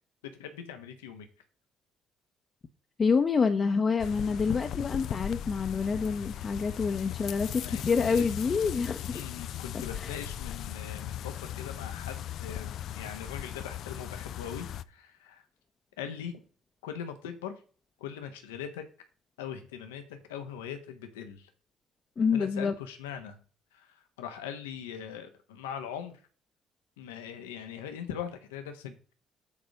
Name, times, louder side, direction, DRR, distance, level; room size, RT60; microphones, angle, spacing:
voice 1, 0.4-1.3 7.5-8.2 9.1-15.4 16.0-16.4 16.8-17.5 18.0-18.8 19.4-21.5 22.3-23.4 23.7-26.2 27.0-28.9, left 8 dB, 85° left, 1.1 m, -41 dB
voice 2, 3.0-9.2 10.0-10.2 22.2-22.7, left 5 dB, 40° left, 0.9 m, -27 dB
sound 1, 4.0-14.8, left 11 dB, 65° left, 0.5 m, -38 dB
8.5 x 4.0 x 6.5 m
hypercardioid pair, 50°, 0 cm